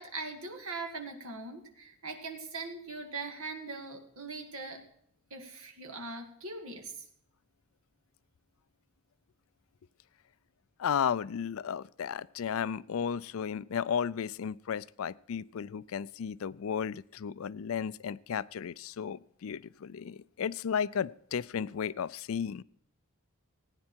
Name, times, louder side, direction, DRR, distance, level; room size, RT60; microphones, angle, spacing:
voice 1, 0.0-4.8 5.3-6.9, right 3 dB, 75° right, 4 dB, 2.2 m, -41 dB
voice 2, 10.8-22.6, left 7 dB, 75° left, 20 dB, 0.4 m, -34 dB
16.5 x 9.7 x 4.5 m, 0.68 s
head